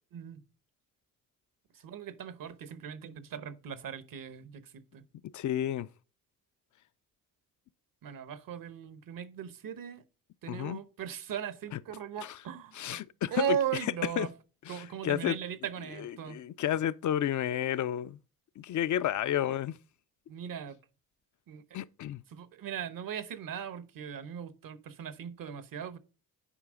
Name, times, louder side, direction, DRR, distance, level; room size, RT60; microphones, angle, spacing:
voice 1, 0.1-0.4 1.7-5.0 8.0-10.0 10.4-13.0 13.3-14.4 14.7-16.4 20.3-20.8 21.5-21.8 22.3-26.0, right 8 dB, 65° right, 1.0 m, -38 dB
voice 2, 5.2-5.9 10.5-10.8 12.2-12.4 12.8-13.6 14.2-14.3 14.7-15.4 16.0-18.2 18.6-19.8 21.7-22.2, left 11 dB, 55° left, 0.5 m, -31 dB
9.9 x 4.8 x 3.7 m
cardioid pair, 70°, 36 cm